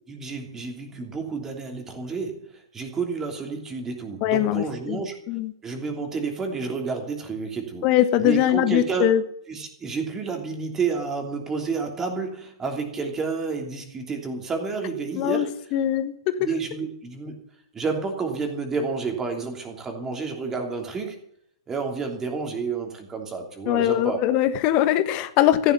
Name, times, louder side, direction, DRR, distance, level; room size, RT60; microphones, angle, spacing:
voice 1, 0.1-5.2 5.6-7.9 8.2-9.1 9.5-15.8 16.4-17.4 17.7-21.2 21.7-24.2, right 4 dB, 15° right, 3 dB, 3.1 m, -30 dB
voice 2, 4.2-5.0 5.3-5.5 7.8-9.2 15.2-15.5 15.7-16.1 23.7-25.7, left 12 dB, 35° left, 11 dB, 1.5 m, -21 dB
14.5 x 11.0 x 6.9 m, 0.71 s
figure-of-eight pair, 115°, 3 cm